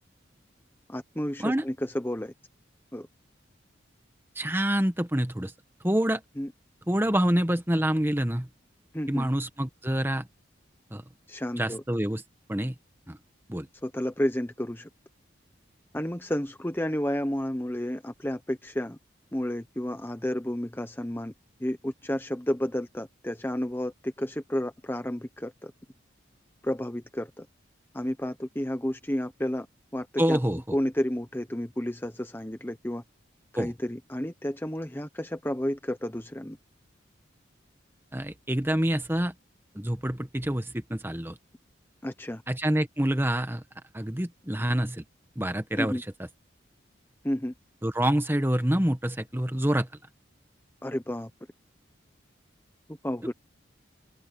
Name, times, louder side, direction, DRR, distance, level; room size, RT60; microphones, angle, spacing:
voice 1, 0.9-2.3 2.9-3.1 6.4-6.5 8.9-9.3 11.3-11.8 13.8-14.9 15.9-19.0 19.3-21.3 21.6-25.7 26.6-27.5 27.9-29.7 29.9-30.4 30.7-33.0 33.5-36.6 42.0-42.4 45.8-46.0 47.2-47.5 50.8-51.3 53.0-53.3, left 1 dB, 10° left, 1.0 m, -31 dB
voice 2, 4.4-5.5 5.8-6.2 6.9-8.5 9.1-10.2 10.9-11.0 11.5-12.2 12.5-12.7 13.1-13.2 13.5-13.7 30.2-30.6 33.6-33.7 38.1-39.3 39.7-41.3 42.5-43.6 43.9-45.0 45.4-45.9 47.8-49.9, right 1 dB, 10° right, 1.3 m, -26 dB
open air
head